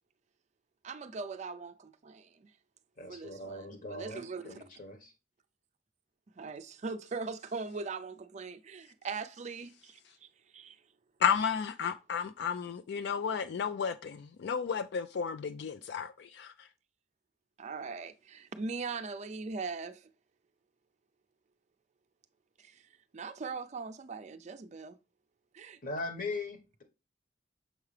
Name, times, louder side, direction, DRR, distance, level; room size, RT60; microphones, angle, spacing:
voice 1, 0.8-2.5 3.1-4.6 6.4-10.0 10.5-10.8 17.6-20.1 22.6-22.8 23.1-25.0 25.5-25.8, right 4 dB, 40° right, 0.4 m, -40 dB
voice 2, 3.0-5.1 25.8-26.8, left 2 dB, 50° left, 1.2 m, -40 dB
voice 3, 11.2-16.7, left 7 dB, 65° left, 0.3 m, -33 dB
6.4 x 4.8 x 3.2 m
head